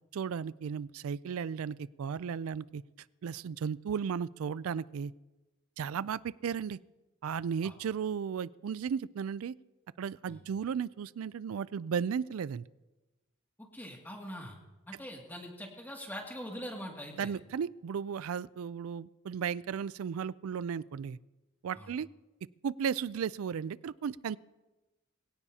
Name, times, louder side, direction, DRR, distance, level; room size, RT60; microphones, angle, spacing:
voice 1, 0.1-2.8 3.2-5.1 5.8-6.8 7.2-9.6 10.0-12.6 17.2-21.2 21.6-22.1 22.6-24.4, right 7 dB, 90° right, 19 dB, 0.4 m, -35 dB
voice 2, 13.6-14.6 14.9-17.3 21.7-21.9, equal, 10° left, 0 dB, 2.2 m, -43 dB
23.0 x 17.0 x 2.8 m, 1.1 s
head